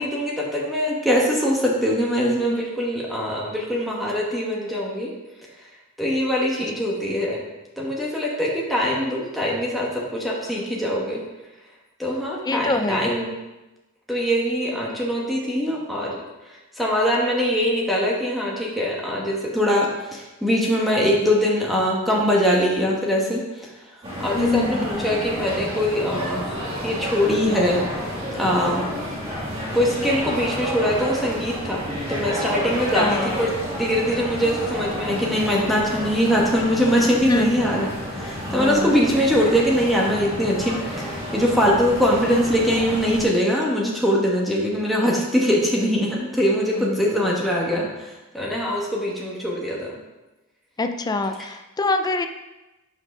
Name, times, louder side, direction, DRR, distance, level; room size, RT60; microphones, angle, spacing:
voice 1, 0.0-5.1 6.0-7.4 7.8-11.2 12.0-13.3 14.1-16.2 16.5-23.7 24.2-27.8 28.3-28.8 29.7-31.8 32.1-33.5 33.8-37.9 38.1-50.0, equal, ahead, -4 dB, 1.1 m, -22 dB
voice 2, 12.4-13.1 24.3-25.1 32.9-33.4 37.3-37.6 38.6-39.0 46.8-47.1 50.8-52.3, left 3 dB, 20° left, 7 dB, 0.4 m, -25 dB
sound 1, 24.0-43.2, equal, 30° right, 2.1 m, -30 dB
6.1 x 5.5 x 5.4 m, 1.0 s
head